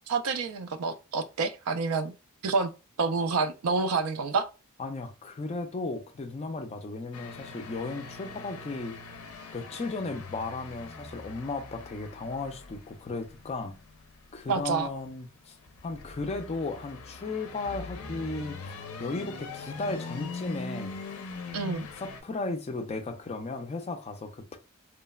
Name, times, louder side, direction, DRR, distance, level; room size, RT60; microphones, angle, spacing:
voice 1, 0.1-2.1 2.4-2.7 3.0-4.5 14.5-14.9 21.5-21.9, right 4 dB, 85° right, 0.4 m, -28 dB
voice 2, 4.8-9.0 9.5-13.7 14.3-15.6 15.8-21.0 22.0-24.6, left 3 dB, 30° left, 0.4 m, -35 dB
sound 1, 7.1-22.2, left 4 dB, 85° left, 0.5 m, -42 dB
3.1 x 2.0 x 2.2 m
head